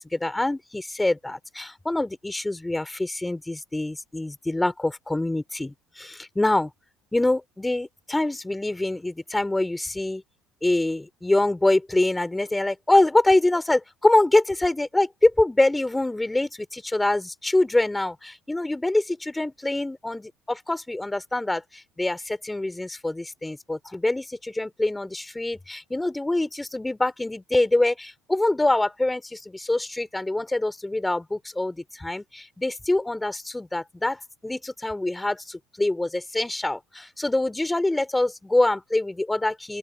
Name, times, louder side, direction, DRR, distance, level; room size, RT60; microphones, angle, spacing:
voice 1, 0.1-6.7 7.1-10.2 10.6-39.8, left 2 dB, 10° left, 4.2 m, -25 dB
open air
hypercardioid pair, 65°, 0 cm